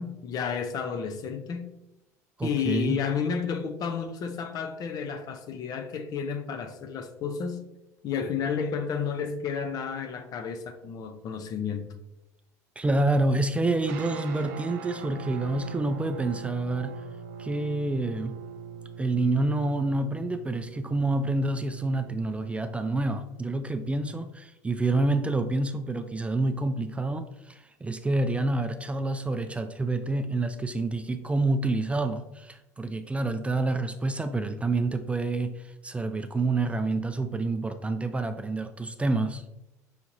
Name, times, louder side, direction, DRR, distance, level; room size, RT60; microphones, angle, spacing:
voice 1, 0.0-1.7 2.4-7.7 8.0-11.9, left 6 dB, 50° left, 0.5 m, -31 dB
voice 2, 2.4-3.0 12.8-17.0 17.4-18.4 19.0-39.4, right 2 dB, 15° right, 0.3 m, -28 dB
sound 1, 13.8-24.3, right 7 dB, 75° right, 0.5 m, -43 dB
5.7 x 2.9 x 2.6 m
hypercardioid pair, 75°, 8 cm